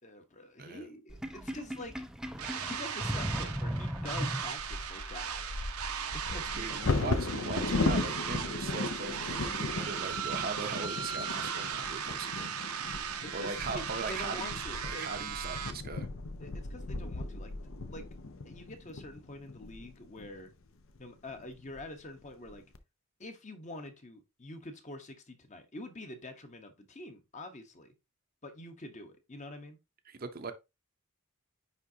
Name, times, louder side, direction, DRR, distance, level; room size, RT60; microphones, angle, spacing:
voice 1, 0.0-2.0 2.7-5.3 6.1-6.8 13.2-15.1 16.4-17.5 17.9-18.1 18.4-20.5 21.0-22.6 23.2-27.9 28.4-29.8, left 1 dB, 35° left, 1.0 m, -46 dB
Sink (filling or washing), 1.1-4.9, equal, 5° right, 0.4 m, -36 dB
sound 1, 2.4-15.7, right 7 dB, 85° right, 0.9 m, -37 dB
Bird vocalization bird call bird song / Wind / Thunder, 4.4-20.3 21.0-21.1 21.4-21.8 22.2-22.8, left 3 dB, 65° left, 0.7 m, -36 dB
voice 2, 6.3-12.5 13.3-16.1 30.1-30.5, right 4 dB, 40° right, 0.7 m, -40 dB
9.7 x 3.6 x 2.7 m
head